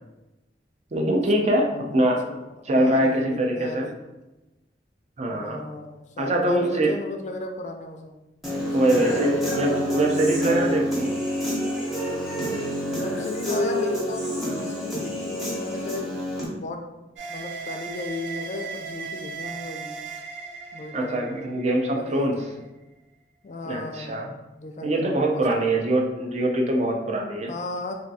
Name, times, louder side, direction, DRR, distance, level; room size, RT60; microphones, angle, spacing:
voice 1, 0.9-2.2 2.7-3.9 5.2-5.6 6.2-7.0 8.7-11.1 20.9-22.4 23.7-24.3 24.8-27.5, right 1 dB, 40° right, 1 dB, 0.4 m, -23 dB
voice 2, 1.7-4.0 5.3-8.2 8.6-9.4 12.8-16.1 16.6-16.8 17.3-20.0 20.7-21.5 22.0-22.6 23.4-25.9 27.5-27.9, left 2 dB, 40° left, 4 dB, 0.4 m, -36 dB
Human voice / Guitar, 8.4-16.4, equal, ahead, 0.7 m, -27 dB
sound 1, 17.2-22.5, right 5 dB, 90° right, 0.5 m, -37 dB
3.4 x 2.3 x 2.7 m, 1.0 s
head